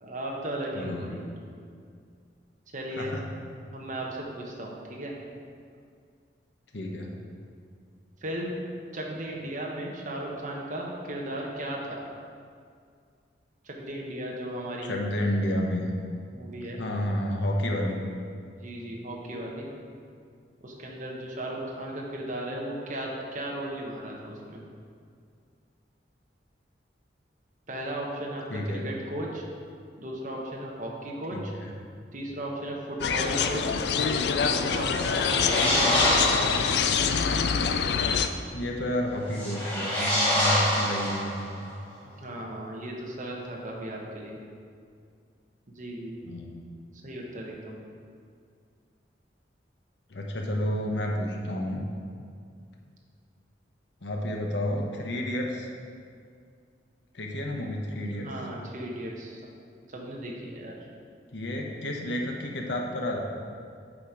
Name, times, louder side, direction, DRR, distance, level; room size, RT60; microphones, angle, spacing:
voice 1, 0.0-1.3 2.7-3.2 3.7-5.1 8.2-8.6 8.9-12.0 13.6-14.9 16.3-16.8 18.6-19.7 20.6-24.6 27.7-29.4 30.0-31.5 32.1-34.1 34.4-36.4 42.2-44.4 45.8-46.2 47.0-47.8 58.2-59.4 59.9-60.7, right 1 dB, 45° right, -2 dB, 1.1 m, -36 dB
voice 2, 0.7-1.1 3.0-3.2 6.7-7.1 14.9-15.9 16.6-18.0 28.5-28.8 31.3-31.7 38.5-41.6 46.2-46.6 50.1-51.9 54.0-55.7 57.1-58.3 61.3-63.2, left 1 dB, 90° left, 0 dB, 1.0 m, -30 dB
sound 1, 33.0-38.3, left 6 dB, 65° left, 0.4 m, -25 dB
sound 2, 34.8-36.9 39.3-41.6, equal, 10° left, 2.0 m, -26 dB
8.6 x 4.4 x 4.8 m, 2.2 s
head